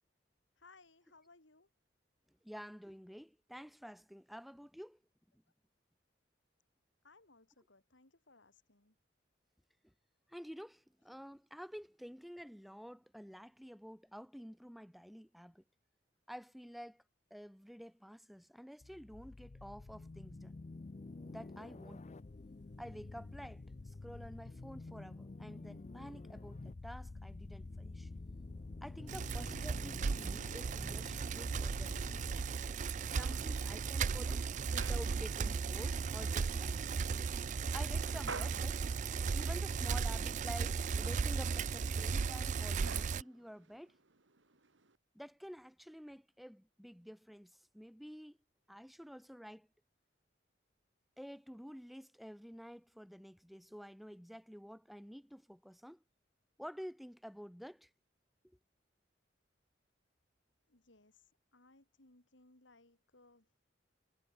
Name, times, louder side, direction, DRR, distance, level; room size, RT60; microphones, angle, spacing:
voice 1, 0.6-1.7 7.0-9.0 60.7-63.5, left 3 dB, 85° left, 3.7 m, -64 dB
voice 2, 2.4-5.0 9.8-9.9 10.3-15.6 16.3-17.0 17.3-20.6 21.2-22.0 22.8-28.1 28.8-32.1 33.1-36.9 37.7-38.8 39.3-43.9 45.1-48.4 48.7-49.7 51.2-56.0 56.6-57.9 58.4-58.6, equal, ahead, 2.8 m, -50 dB
sound 1, 18.8-32.5, left 3 dB, 35° left, 0.5 m, -49 dB
Bicycle, 29.1-43.2, right 5 dB, 40° right, 0.4 m, -36 dB
sound 2, 31.2-45.0, right 4 dB, 90° right, 2.4 m, -54 dB
head